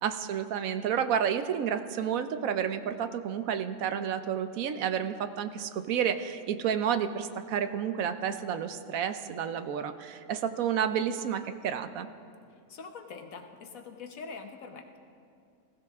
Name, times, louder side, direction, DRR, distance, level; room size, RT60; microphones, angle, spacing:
voice 1, 0.0-12.1, right 8 dB, 75° right, 10 dB, 1.1 m, -30 dB
voice 2, 12.7-15.0, left 5 dB, 75° left, 5 dB, 1.5 m, -44 dB
20.0 x 15.0 x 3.6 m, 2.5 s
omnidirectional pair, 1.5 m